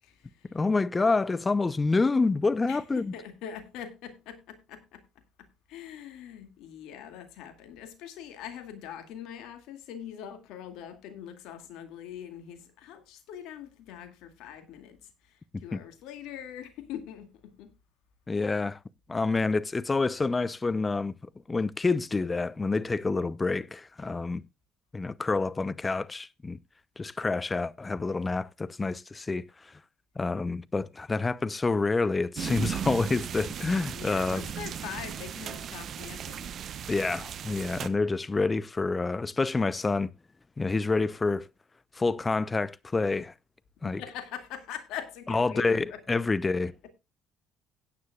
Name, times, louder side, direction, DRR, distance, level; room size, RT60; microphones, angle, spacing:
voice 1, 0.5-3.1 15.7-15.8 18.3-18.8 19.1-21.1 21.5-24.4 24.9-26.6 27.0-29.4 30.2-34.5 36.9-40.1 40.6-41.5 42.0-43.3 43.8-44.0 45.3-46.7, left 3 dB, 25° left, 0.7 m, -28 dB
voice 2, 2.6-5.0 5.7-15.1 15.6-17.7 33.9-36.5 43.8-46.2, left 9 dB, 70° left, 2.3 m, -42 dB
sound 1, 32.4-37.9, right 8 dB, 55° right, 0.9 m, -37 dB
16.5 x 9.6 x 2.4 m
hypercardioid pair, 60°, 0 cm